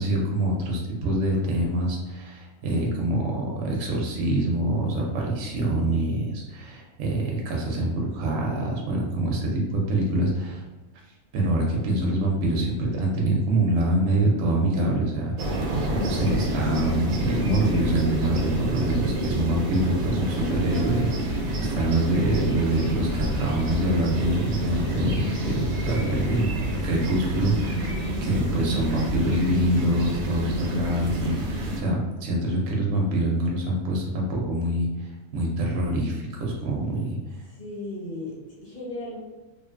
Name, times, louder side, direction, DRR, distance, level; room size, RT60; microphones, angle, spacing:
voice 1, 0.0-10.6 11.3-15.7 16.0-28.0 28.3-37.2, right 1 dB, 65° right, -2 dB, 0.8 m, -25 dB
sound 1, 15.4-31.8, right 1 dB, 85° right, 1.0 m, -28 dB
voice 2, 19.6-20.0 27.9-28.4 37.5-39.2, left 1 dB, 40° left, -8 dB, 1.0 m, -37 dB
sound 2, 20.7-29.5, left 1 dB, 70° left, 0.5 m, -38 dB
2.5 x 2.5 x 2.4 m, 1.2 s
omnidirectional pair, 1.4 m